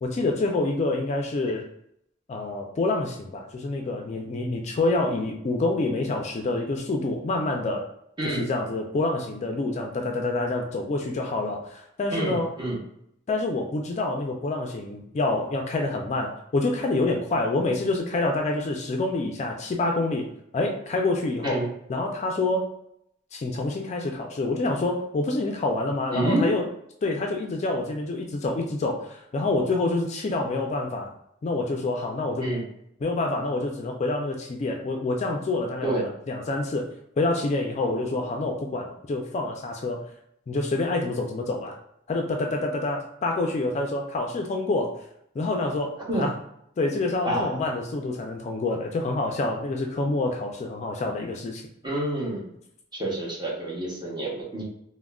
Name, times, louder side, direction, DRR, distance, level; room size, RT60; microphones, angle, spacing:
voice 1, 0.0-1.6 2.3-7.9 8.2-12.5 13.3-22.7 23.3-26.6 27.0-31.1 31.4-32.5 33.0-36.8 37.2-40.1 40.5-41.7 42.1-45.0 45.4-46.3 46.8-51.6, left 2 dB, 35° left, 1 dB, 0.3 m, -27 dB
voice 2, 12.1-12.8 21.4-21.7 26.1-26.5 32.4-32.6 35.8-36.1 46.0-46.3 47.2-47.6 51.8-52.4 52.9-54.6, right 1 dB, 20° right, -4 dB, 0.8 m, -28 dB
3.5 x 2.0 x 2.2 m, 0.74 s
head